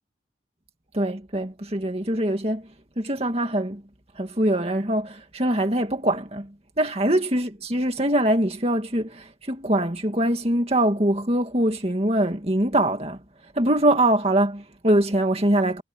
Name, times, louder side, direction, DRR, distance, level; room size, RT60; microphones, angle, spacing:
voice 1, 0.9-2.7 3.0-3.8 4.2-13.2 13.5-15.8, right 1 dB, 35° right, 2.2 m, -23 dB
head